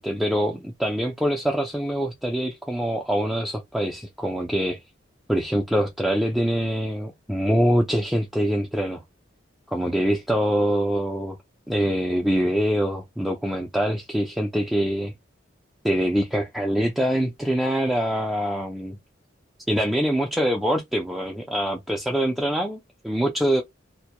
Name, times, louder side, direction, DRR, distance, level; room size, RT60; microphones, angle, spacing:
voice 1, 0.0-4.8 5.3-9.0 9.7-11.4 11.7-15.1 15.8-19.0 19.7-23.6, equal, ahead, 0.3 m, -24 dB
2.2 x 2.1 x 2.8 m
head